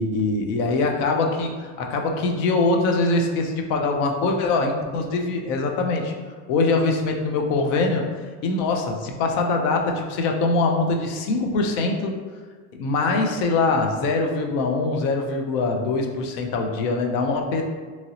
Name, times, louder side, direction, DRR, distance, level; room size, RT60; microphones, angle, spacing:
voice 1, 0.0-6.1 6.5-8.0 8.4-12.2 12.7-17.6, left 3 dB, 60° left, 2 dB, 0.5 m, -23 dB
2.9 x 2.7 x 2.8 m, 1.5 s
cardioid pair, 165°, 38 cm